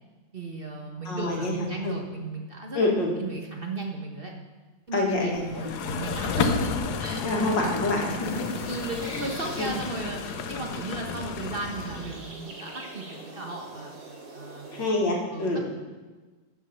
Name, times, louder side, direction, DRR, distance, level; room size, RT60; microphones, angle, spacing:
voice 1, 0.3-2.9 3.2-4.3 4.9-6.7 7.0-7.3 7.6-7.8 8.5-13.9 14.3-14.9 15.3-15.6, right 2 dB, 35° right, 1 dB, 1.2 m, -35 dB
voice 2, 1.0-2.0 2.7-3.1 4.9-5.7 7.2-8.4 9.0-9.2 9.6-9.7 14.7-15.6, left 2 dB, 85° left, -1 dB, 2.8 m, -27 dB
sound 1, 5.3-12.3, left 5 dB, 65° left, 1.2 m, -32 dB
sound 2, 8.2-14.9, right 3 dB, 85° right, 2.7 m, -44 dB
12.5 x 6.4 x 7.0 m, 1.3 s
omnidirectional pair, 1.9 m